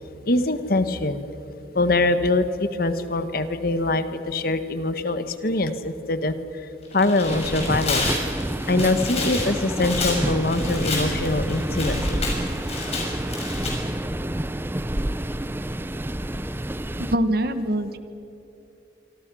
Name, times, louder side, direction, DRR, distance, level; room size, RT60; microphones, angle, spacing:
voice 1, 0.3-1.2 1.7-6.3 6.9-8.1 8.7-12.2, left 2 dB, 55° left, 10 dB, 1.4 m, -23 dB
Tearing, 6.8-13.7, left 3 dB, 35° left, 6.6 m, -30 dB
sound 1, 7.3-17.2, right 1 dB, 10° right, 0.6 m, -28 dB
voice 2, 17.0-18.0, right 1 dB, 55° right, 10 dB, 1.5 m, -23 dB
26.5 x 25.5 x 6.3 m, 2.9 s
head